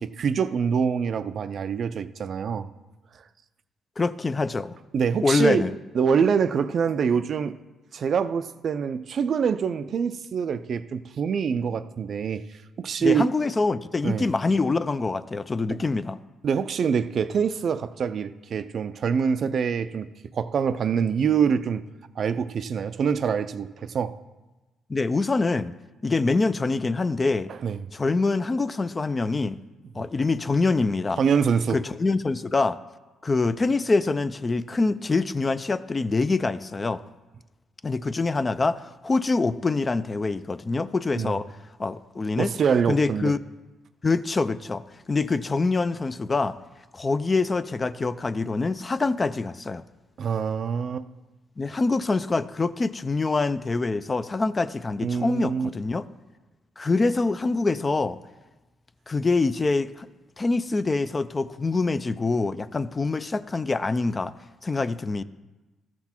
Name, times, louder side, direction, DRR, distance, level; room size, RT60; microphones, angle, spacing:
voice 1, 0.0-2.7 4.9-5.7 5.9-7.5 7.9-12.4 12.8-13.3 14.0-14.3 16.4-20.1 20.3-21.8 22.2-24.2 27.6-27.8 31.2-31.8 41.2-41.4 42.4-43.3 50.2-51.1 55.0-55.7, right 6 dB, 55° right, 0.4 m, -25 dB
voice 2, 4.0-4.8 5.2-5.8 13.0-16.2 24.9-25.7 26.0-27.5 27.9-29.6 30.0-31.2 31.7-32.8 33.2-37.0 37.8-41.5 41.8-42.5 42.9-43.4 44.0-44.8 45.1-46.6 46.9-49.8 51.6-56.1 56.8-58.2 59.1-60.1 60.4-64.3 64.6-65.2, left 3 dB, 30° left, 0.3 m, -25 dB
13.5 x 6.0 x 4.4 m
cardioid pair, 90°, 0 cm